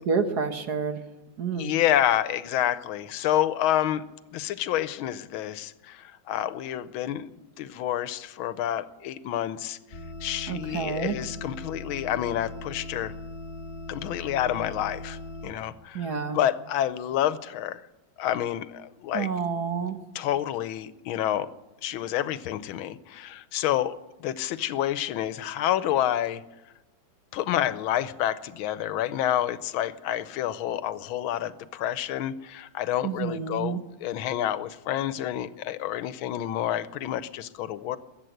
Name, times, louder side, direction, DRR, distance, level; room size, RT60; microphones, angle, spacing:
voice 1, 0.1-1.0 1.4-1.7 10.5-11.2 15.9-16.4 19.1-20.0 33.0-33.8, right 6 dB, 55° right, 7 dB, 1.6 m, -29 dB
voice 2, 1.6-4.0 4.3-7.3 7.6-13.1 13.9-17.8 18.2-19.3 20.1-21.5 21.8-26.4 27.3-38.0, left 11 dB, 90° left, 14 dB, 1.5 m, -28 dB
sound 1, 9.9-15.5, left 2 dB, 35° left, 1.8 m, -39 dB
21.5 x 8.1 x 7.8 m, 1.1 s
omnidirectional pair, 2.2 m